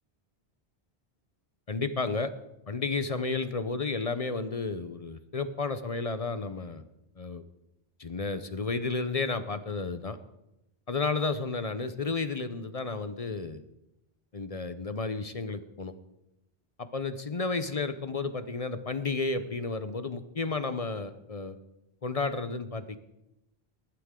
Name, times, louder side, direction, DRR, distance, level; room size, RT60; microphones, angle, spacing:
voice 1, 1.7-2.3 2.7-6.8 7.2-7.4 8.0-10.2 10.9-13.6 14.3-15.9 16.8-21.6 22.0-23.0, left 4 dB, 40° left, 11 dB, 0.7 m, -32 dB
21.0 x 11.5 x 3.7 m, 0.89 s
omnidirectional pair, 1.0 m